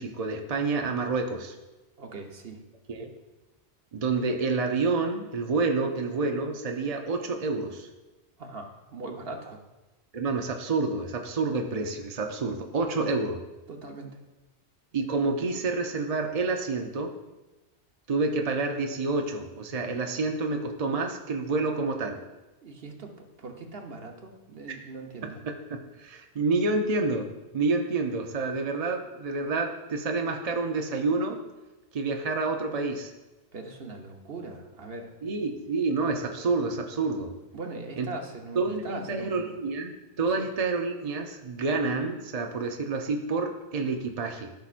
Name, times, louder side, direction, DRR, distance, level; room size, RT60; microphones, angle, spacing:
voice 1, 0.0-1.6 2.9-3.1 3.9-7.9 10.1-13.4 14.9-17.1 18.1-22.2 24.7-24.8 25.2-31.4 31.9-33.1 35.2-37.3 38.0-38.1 38.6-44.5, right 3 dB, 40° right, 3 dB, 0.6 m, -28 dB
voice 2, 2.0-2.6 8.4-9.6 13.0-13.1 13.7-14.2 22.6-25.4 33.5-35.1 37.5-39.6 40.4-40.5, right 3 dB, 55° right, 2 dB, 1.2 m, -40 dB
14.0 x 5.8 x 2.5 m, 1.1 s
omnidirectional pair, 1.2 m